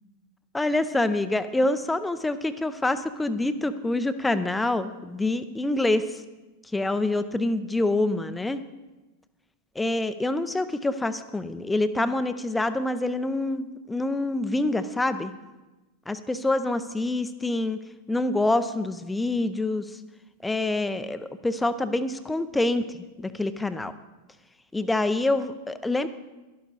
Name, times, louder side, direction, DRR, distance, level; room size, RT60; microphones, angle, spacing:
voice 1, 0.5-6.1 6.7-8.6 9.8-15.3 16.1-17.8 18.1-19.8 20.4-22.9 23.2-23.9 24.7-26.1, left 2 dB, 10° left, 12 dB, 0.6 m, -26 dB
12.0 x 11.5 x 4.1 m, 1.1 s
figure-of-eight pair, 90°, 0 cm